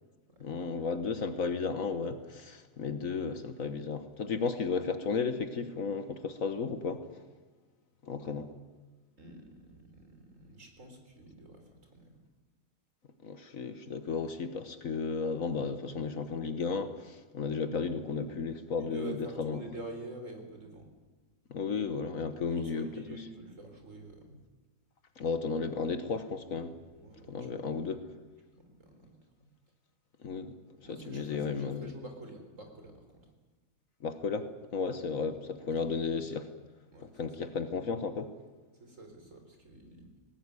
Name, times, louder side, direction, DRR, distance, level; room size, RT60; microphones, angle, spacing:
voice 1, 0.4-7.2 8.0-8.5 13.2-19.6 21.5-22.9 25.2-26.7 27.3-28.0 30.2-30.6 30.9-31.9 34.0-36.5 37.2-38.3, left 5 dB, 55° left, 10 dB, 1.5 m, -34 dB
voice 2, 9.2-12.2 18.8-20.9 22.5-24.4 26.9-28.0 28.6-29.1 30.8-33.3 35.6-36.0 36.9-37.2 38.8-40.1, right 1 dB, 50° right, 4 dB, 4.2 m, -48 dB
19.0 x 18.0 x 9.7 m, 1.3 s
omnidirectional pair, 1.7 m